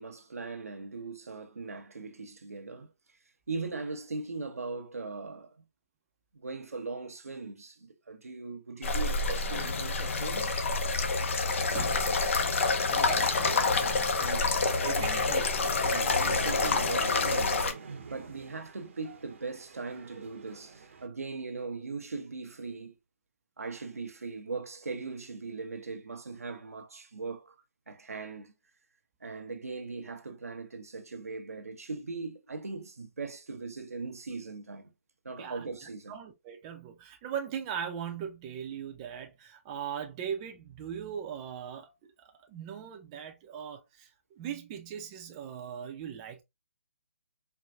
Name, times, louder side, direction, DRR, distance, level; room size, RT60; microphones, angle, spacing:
voice 1, 0.0-2.9 3.5-5.6 6.3-10.6 14.2-15.0 15.8-17.7 18.1-23.0 23.6-27.6 27.9-28.5 29.2-34.9 35.2-36.2, right 3 dB, 90° right, 0.8 m, -39 dB
sound 1, 8.8-17.7, left 3 dB, 60° left, 0.7 m, -27 dB
voice 2, 11.7-12.1 12.9-13.7 14.8-15.4 35.4-35.7 36.1-41.9 42.2-44.1 44.4-46.4, right 8 dB, 25° right, 0.6 m, -39 dB
sound 2, 13.0-21.1, right 5 dB, 60° right, 0.8 m, -46 dB
4.5 x 2.2 x 2.5 m
hypercardioid pair, 145°, 8 cm